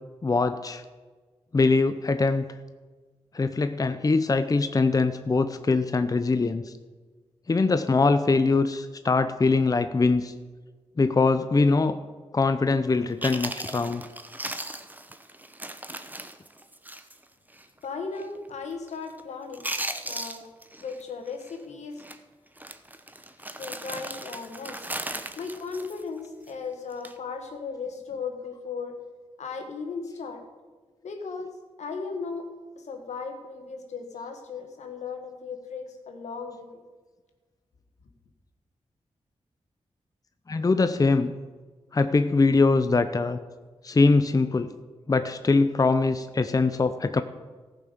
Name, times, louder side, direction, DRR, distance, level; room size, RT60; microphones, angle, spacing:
voice 1, 0.2-0.8 1.5-2.4 3.3-6.6 7.5-10.3 11.0-12.0 12.3-14.0 40.5-41.3 41.9-43.4 43.8-44.7 45.1-47.2, left 3 dB, 30° left, 10 dB, 0.6 m, -22 dB
Chewing mastication, 12.9-13.0 13.2-17.2 17.5-17.7 18.2-18.5 18.7-19.2 19.5-21.0 21.3-21.5 22.0-22.2 22.6-26.5 26.9-27.2, right 1 dB, 15° right, 0.9 m, -37 dB
voice 2, 17.8-19.7 20.0-20.5 20.8-22.0 23.6-24.9 25.4-29.0 29.4-30.5 31.0-32.5 32.8-36.7, left 5 dB, 80° left, 5 dB, 1.6 m, -36 dB
14.5 x 5.8 x 6.7 m, 1.4 s
cardioid pair, 55°, 12 cm